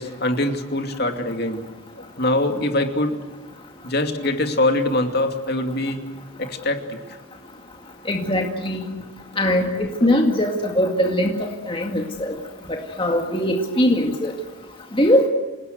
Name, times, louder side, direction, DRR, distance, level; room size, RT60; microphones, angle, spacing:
voice 1, 0.0-1.6 2.0-3.2 3.8-6.0 6.4-7.0 10.0-10.1, left 1 dB, 45° left, 5 dB, 2.6 m, -23 dB
voice 2, 8.1-8.8 9.4-11.3 11.7-12.3 13.0-14.3 14.9-15.3, left 1 dB, 25° left, 2 dB, 2.1 m, -20 dB
28.0 x 19.0 x 8.0 m, 1.3 s
head